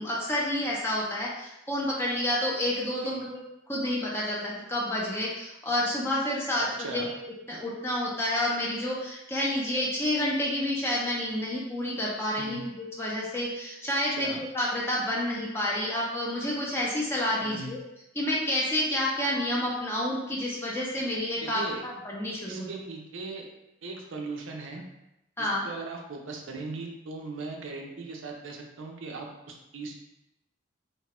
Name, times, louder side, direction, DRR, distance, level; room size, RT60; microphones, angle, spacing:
voice 1, 0.0-3.4 3.7-7.2 7.5-17.8 18.1-22.7 25.4-25.7, left 1 dB, 15° left, -4 dB, 0.5 m, -29 dB
voice 2, 6.8-7.1 12.4-12.6 14.1-14.4 17.4-17.7 21.4-21.8 22.5-23.5 23.8-24.8 25.4-29.9, right 3 dB, 80° right, 1 dB, 0.5 m, -39 dB
3.1 x 2.2 x 2.9 m, 0.88 s
head